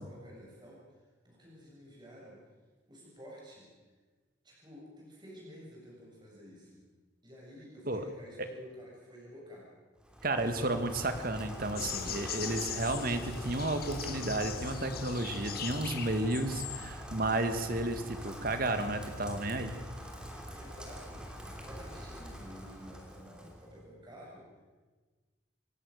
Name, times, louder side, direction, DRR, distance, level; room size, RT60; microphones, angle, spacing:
voice 1, 0.0-2.4 2.9-3.7 4.4-6.9 7.2-9.7 20.5-24.6, equal, 25° right, -4 dB, 7.7 m, -51 dB
Rain, 10.0-23.8, equal, 5° right, 2.9 m, -44 dB
voice 2, 10.2-19.7, right 2 dB, 50° right, 8 dB, 1.9 m, -32 dB
sound 1, 11.8-17.1, left 7 dB, 50° left, 2.1 m, -40 dB
27.5 x 16.5 x 6.6 m, 1.3 s
head